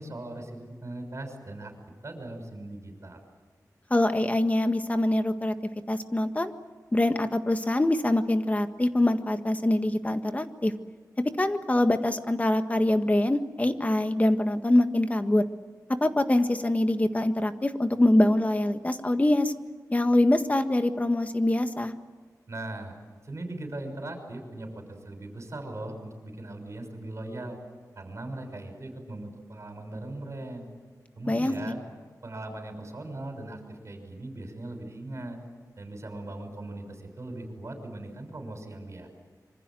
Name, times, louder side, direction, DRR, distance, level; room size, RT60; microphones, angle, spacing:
voice 1, 0.0-1.7 2.0-3.2 22.5-22.9 23.2-27.6 27.9-30.7 31.2-31.8 32.2-35.4 35.8-39.1, right 2 dB, 50° right, 5 dB, 6.4 m, -39 dB
voice 2, 3.9-5.5 5.9-6.5 6.9-10.7 11.2-15.4 15.9-19.5 19.9-21.9 31.3-31.5, left 1 dB, 25° left, 8 dB, 1.6 m, -24 dB
26.5 x 24.5 x 7.8 m, 1.5 s
wide cardioid pair, 110°, 7 cm